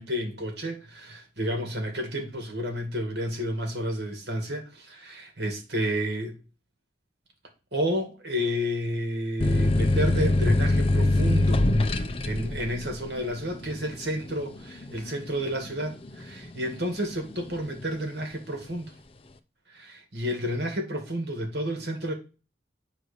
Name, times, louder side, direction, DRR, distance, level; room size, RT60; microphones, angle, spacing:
voice 1, 0.0-6.4 7.7-11.7 12.0-18.9 19.7-22.1, equal, 65° right, 2.0 m, -31 dB
sound 1, 9.4-16.7 17.1-17.8, left 2 dB, 30° left, 0.6 m, -24 dB
9.0 x 3.2 x 6.6 m
head